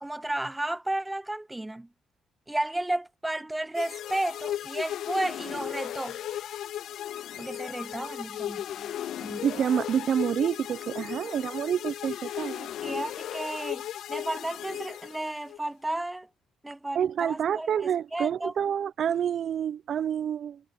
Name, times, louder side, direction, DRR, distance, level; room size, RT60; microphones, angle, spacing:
voice 1, 0.0-1.9 2.5-6.2 7.4-8.9 9.2-9.5 12.8-13.8 14.1-16.3 16.6-18.5, right 1 dB, 10° right, 0.6 m, -33 dB
sound 1, 3.7-15.6, left 11 dB, 75° left, 0.5 m, -36 dB
voice 2, 9.4-12.7 16.9-20.6, right 8 dB, 60° right, 0.5 m, -28 dB
cardioid pair, 90°, 0 cm